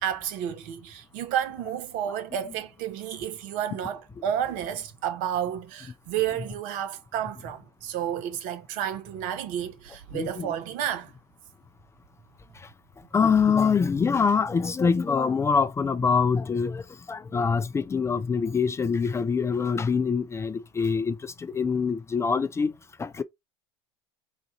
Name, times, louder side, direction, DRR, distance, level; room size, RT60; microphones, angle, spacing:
voice 1, 0.0-11.1, right 10 dB, 60° right, 0.9 m, -31 dB
voice 2, 10.1-10.5 12.5-12.7 13.1-23.2, left 5 dB, 20° left, 0.4 m, -25 dB
4.0 x 2.4 x 4.1 m
hypercardioid pair, 85°, 15 cm